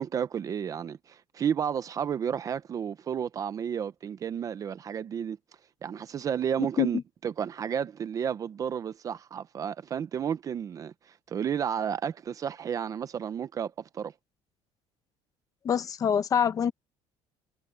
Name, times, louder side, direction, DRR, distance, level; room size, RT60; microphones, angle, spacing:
voice 1, 0.0-5.4 5.8-10.9 11.3-14.1, right 8 dB, 30° right, 0.7 m, -32 dB
voice 2, 6.6-6.9 15.6-16.7, left 8 dB, 30° left, 0.9 m, -25 dB
cardioid pair, 170°, 11 cm